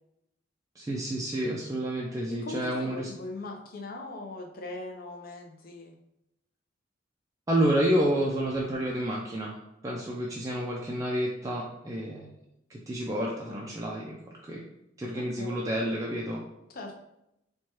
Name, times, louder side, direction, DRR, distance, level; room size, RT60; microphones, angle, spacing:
voice 1, 0.8-3.1 7.5-9.6 9.8-12.3 12.7-14.2 14.4-14.6 15.0-16.4, right 1 dB, 20° right, -3 dB, 0.3 m, -29 dB
voice 2, 2.3-6.0 15.1-15.6 16.7-17.0, left 2 dB, 50° left, 2 dB, 0.5 m, -40 dB
4.4 x 2.2 x 2.9 m, 0.84 s
head